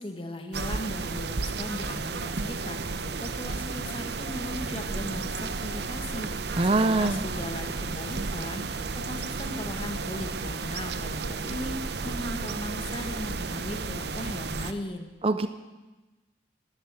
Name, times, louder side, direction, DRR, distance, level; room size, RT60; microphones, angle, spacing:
voice 1, 0.0-15.1, left 1 dB, 30° left, 5 dB, 1.6 m, -38 dB
sound 1, 0.5-14.7, right 4 dB, 65° right, 0.8 m, -33 dB
sound 2, 1.2-14.3, left 1 dB, 85° left, 1.9 m, -46 dB
voice 2, 6.6-7.2 15.2-15.5, right 2 dB, 30° right, 10 dB, 0.6 m, -23 dB
13.5 x 11.0 x 9.5 m, 1.1 s
head